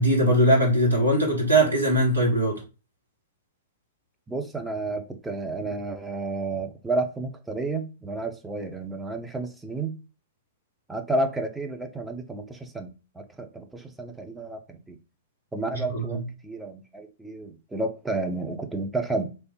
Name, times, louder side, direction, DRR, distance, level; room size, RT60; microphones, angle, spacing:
voice 1, 0.0-2.6 15.9-16.2, right 1 dB, 80° right, 1.4 m, -21 dB
voice 2, 4.3-10.0 10.9-12.9 13.2-15.0 15.5-19.3, right 2 dB, 5° right, 0.6 m, -31 dB
3.3 x 2.5 x 2.8 m
figure-of-eight pair, 105°, 0 cm